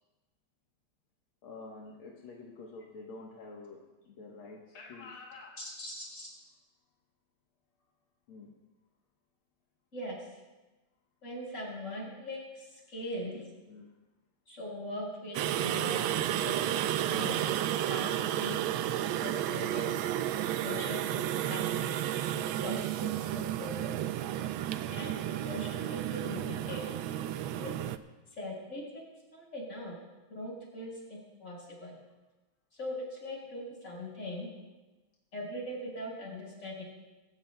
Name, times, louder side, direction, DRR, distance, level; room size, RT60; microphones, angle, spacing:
voice 1, 1.4-5.6 8.3-8.5 13.7-13.9, left 3 dB, 85° left, -2 dB, 2.1 m, -48 dB
voice 2, 5.6-6.3 9.9-10.2 11.2-13.4 14.5-16.0 16.4-17.4 17.9-18.7 19.2-20.0 20.6-22.1 22.3-24.0 24.9-26.8 27.6-27.7 28.4-29.1 29.3-29.9 30.3-31.9 32.7-34.5 35.3-36.8, left 1 dB, 35° left, -3 dB, 5.4 m, -41 dB
sound 1, 15.3-28.0, right 12 dB, 80° right, 1.3 m, -32 dB
25.0 x 14.0 x 2.2 m, 1.1 s
omnidirectional pair, 2.3 m